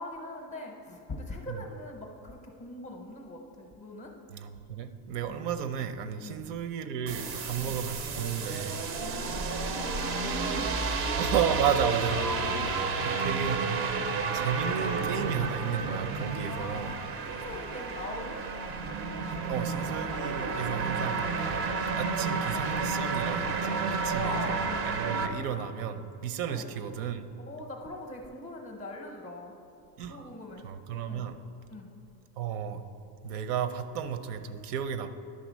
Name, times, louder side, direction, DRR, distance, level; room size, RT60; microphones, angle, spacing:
voice 1, 0.0-4.1 5.2-5.4 6.2-6.4 7.6-7.8 9.0-10.8 11.9-13.0 16.4-18.4 23.9-24.7 25.0-25.4 26.5-26.6 27.5-29.5 30.1-30.6 31.1-31.3 31.7-31.9, left 2 dB, 15° left, 2 dB, 0.5 m, -41 dB
voice 2, 4.3-8.9 11.2-12.2 13.0-13.6 14.3-16.9 19.5-21.7 22.0-27.3 30.0-30.3 30.6-31.4 32.4-32.9 33.2-35.1, right 8 dB, 90° right, 11 dB, 0.7 m, -33 dB
sound 1, 7.1-25.3, right 4 dB, 30° right, 0.4 m, -31 dB
10.5 x 3.8 x 6.1 m, 2.8 s
cardioid pair, 160°, 45 cm